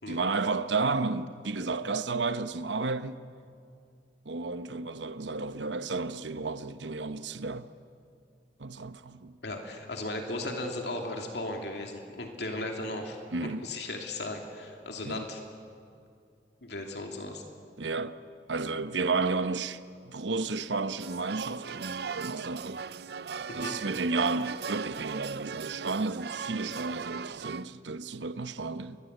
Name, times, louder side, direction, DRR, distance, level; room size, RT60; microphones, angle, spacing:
voice 1, 0.1-3.2 4.2-7.7 8.6-9.3 13.3-13.6 15.0-15.3 17.8-18.2 18.5-22.9 23.5-29.0, right 3 dB, 90° right, 1.0 m, -32 dB
voice 2, 9.4-13.2 13.6-15.4 16.6-17.4 23.5-23.7, left 2 dB, 70° left, 2.7 m, -36 dB
sound 1, 21.0-27.7, right 6 dB, 65° right, 0.5 m, -38 dB
29.0 x 22.5 x 8.1 m
head